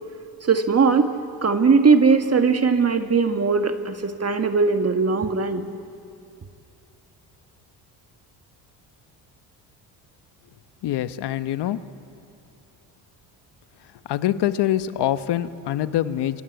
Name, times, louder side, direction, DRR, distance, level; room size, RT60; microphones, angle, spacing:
voice 1, 0.5-1.1 1.4-5.7, right 5 dB, 35° right, 7 dB, 1.7 m, -19 dB
voice 2, 10.8-11.8 14.1-16.4, left 12 dB, 65° left, 12 dB, 1.1 m, -24 dB
26.5 x 25.5 x 8.2 m, 2.6 s
supercardioid pair, 75°, 44 cm